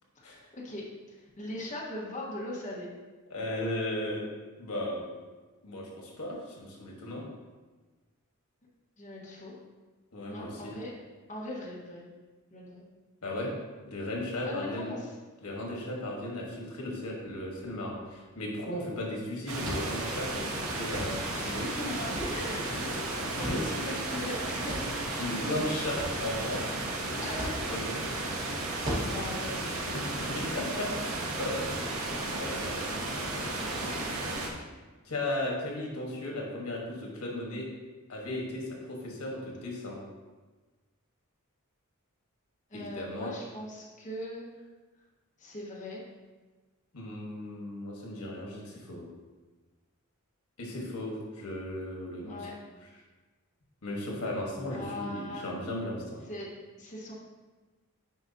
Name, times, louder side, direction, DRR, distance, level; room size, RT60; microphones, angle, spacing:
voice 1, 0.1-2.9 9.0-9.5 10.3-11.0 11.3-12.1 12.5-12.9 14.4-15.1 21.3-24.9 25.2-25.8 27.2-27.5 28.9-29.5 33.6-34.2 42.7-44.5 45.4-46.0 52.2-52.6 54.7-55.5 56.2-56.5 56.8-57.1, left 1 dB, 35° left, -5 dB, 1.3 m, -40 dB
voice 2, 3.3-4.2 4.6-5.1 5.6-7.3 10.1-10.8 13.2-13.5 13.8-14.9 15.4-21.7 22.6-23.6 25.2-26.6 27.1-27.2 27.7-27.9 29.9-33.0 35.0-37.7 38.1-40.0 42.7-43.3 46.9-49.0 50.6-52.5 53.8-56.2, left 1 dB, 90° left, -1 dB, 1.4 m, -36 dB
sound 1, 17.9-31.1, equal, 35° right, 2.0 m, -43 dB
sound 2, 19.5-34.5, right 2 dB, 70° right, 1.0 m, -34 dB
9.0 x 4.9 x 2.7 m, 1.3 s
head